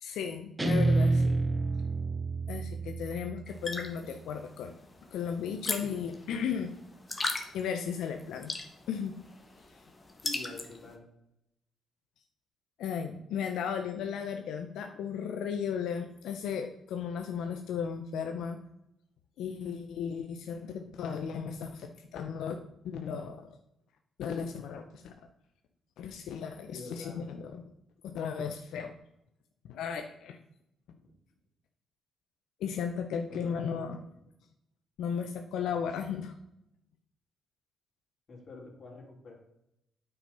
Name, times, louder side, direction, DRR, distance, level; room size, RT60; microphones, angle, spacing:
voice 1, 0.0-1.4 2.5-4.7 5.1-6.7 7.5-8.5 8.9-9.1 12.8-18.6 19.4-23.5 24.2-25.1 26.0-27.6 28.0-28.9 29.6-30.4 32.6-34.0 35.0-36.3, left 7 dB, 85° left, 5 dB, 0.7 m, -35 dB
Guitar, 0.6-3.8, right 3 dB, 15° right, 0.5 m, -28 dB
sound 1, 3.5-10.9, left 2 dB, 20° left, 1.2 m, -39 dB
voice 2, 10.2-11.0 26.7-27.2 31.0-31.1 33.3-33.9 34.2-34.3 38.3-39.3, left 3 dB, 45° left, -1 dB, 3.2 m, -46 dB
9.0 x 5.9 x 5.4 m, 0.82 s
cardioid pair, 135°, 0 cm